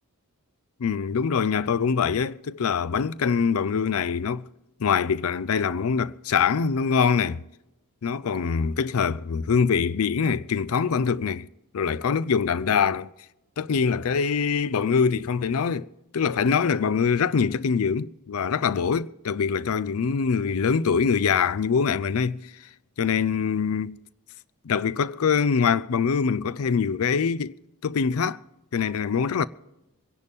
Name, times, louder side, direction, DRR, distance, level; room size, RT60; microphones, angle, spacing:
voice 1, 0.8-4.5 4.8-7.4 8.0-11.5 11.7-13.1 13.6-22.4 23.0-24.0 24.6-27.5 27.8-28.4 28.7-29.4, left 6 dB, 70° left, 0.5 m, -24 dB
25.0 x 10.5 x 3.5 m
head